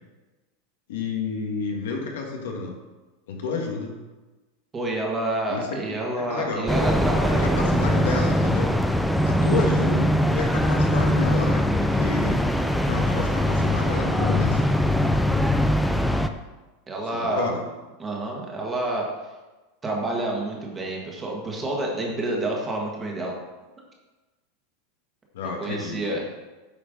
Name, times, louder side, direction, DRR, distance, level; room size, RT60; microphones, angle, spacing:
voice 1, 0.9-2.7 3.3-4.0 5.5-6.0 6.3-6.7 7.4-11.6 11.9-12.4 12.8-15.1 17.2-17.7 25.3-26.0, left 4 dB, 90° left, 1 dB, 1.8 m, -30 dB
voice 2, 4.7-7.9 9.4-9.5 16.9-17.5 18.0-19.1 19.8-23.3 25.4-26.4, right 1 dB, 15° right, -1 dB, 1.6 m, -29 dB
sound 1, 6.7-16.3, equal, ahead, 0.4 m, -22 dB
8.6 x 4.7 x 5.2 m, 1.2 s
supercardioid pair, 160°, 0 cm